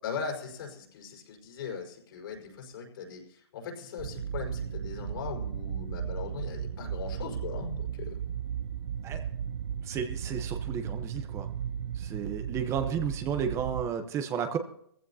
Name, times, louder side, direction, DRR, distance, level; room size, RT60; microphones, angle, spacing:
voice 1, 0.0-8.2, left 6 dB, 65° left, 1 dB, 5.1 m, -39 dB
sound 1, 4.0-13.9, right 8 dB, 80° right, 0.7 m, -35 dB
voice 2, 9.8-11.5 12.0-14.6, right 7 dB, 20° right, 7 dB, 1.0 m, -33 dB
19.0 x 15.5 x 2.8 m, 0.67 s
hypercardioid pair, 145°, 13 cm